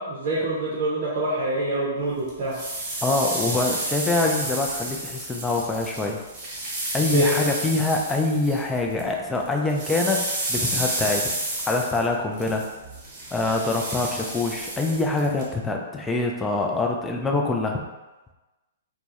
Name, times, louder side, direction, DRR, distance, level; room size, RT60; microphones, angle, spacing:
voice 1, 0.0-2.6 7.1-7.3, right 1 dB, 50° right, -5 dB, 0.6 m, -25 dB
sound 1, 2.3-9.1 9.3-15.4, right 1 dB, 30° right, 0.9 m, -31 dB
voice 2, 3.0-6.2 6.9-11.3 11.7-12.6 13.3-17.8, left 3 dB, 10° left, 1 dB, 0.3 m, -25 dB
2.2 x 2.0 x 2.7 m, 1.1 s
hypercardioid pair, 125°, 0 cm